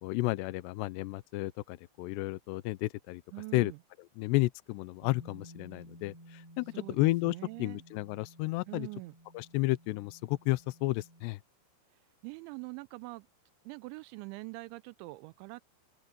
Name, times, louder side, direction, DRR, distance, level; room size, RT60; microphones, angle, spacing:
voice 1, 0.0-3.2 3.5-3.7 4.2-8.9 9.3-11.4, left 20 dB, 85° left, 2.6 m, -32 dB
voice 2, 3.3-3.8 6.7-7.8 8.7-9.1 12.2-13.3 13.7-15.6, right 25 dB, 85° right, 2.8 m, -44 dB
Bass guitar, 5.0-11.3, equal, 5° right, 7.0 m, -55 dB
open air
omnidirectional pair, 5.4 m